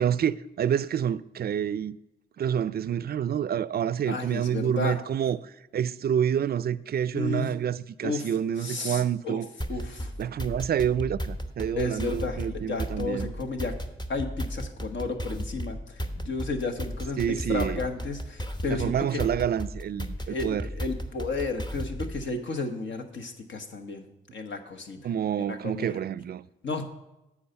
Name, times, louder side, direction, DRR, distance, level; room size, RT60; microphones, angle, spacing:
voice 1, 0.0-2.0 2.4-9.5 10.2-13.3 17.2-17.8 18.7-20.6 25.0-26.5, right 9 dB, 50° right, 0.4 m, -28 dB
voice 2, 4.1-5.0 7.1-7.5 8.0-9.4 9.7-10.1 11.8-13.7 14.1-19.2 20.2-24.1 24.3-25.1 25.5-26.0 26.6-26.9, left 3 dB, 60° left, 1.2 m, -33 dB
sound 1, 9.6-22.3, equal, 20° left, 1.0 m, -35 dB
8.6 x 4.8 x 6.8 m
supercardioid pair, 45°, 21 cm